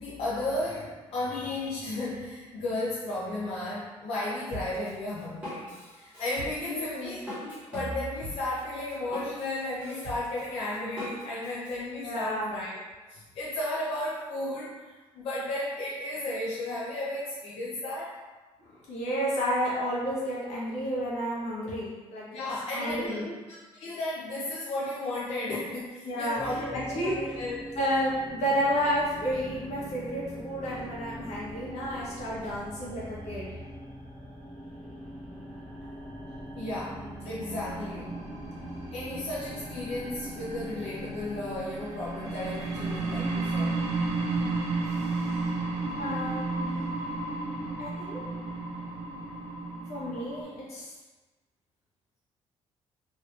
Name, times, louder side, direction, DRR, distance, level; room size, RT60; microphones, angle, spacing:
voice 1, 0.0-12.8 13.1-18.2 22.3-27.6 36.5-38.1 38.9-43.8, left 1 dB, 55° left, -7 dB, 0.5 m, -34 dB
Drum kit, 4.5-11.7, left 1 dB, 10° right, 1.3 m, -41 dB
voice 2, 6.7-7.2 12.0-12.5 18.6-22.4 22.7-23.2 26.0-27.3 27.8-33.5 38.6-38.7 45.0-45.1 46.0-46.9 47.8-48.3 49.9-50.9, equal, 75° left, -7 dB, 1.2 m, -31 dB
sound 1, 26.4-43.8, equal, 10° left, 0.9 m, -42 dB
sound 2, 37.5-50.4, right 3 dB, 70° right, 0.6 m, -33 dB
3.1 x 2.6 x 3.1 m, 1.2 s
cardioid pair, 175°, 12 cm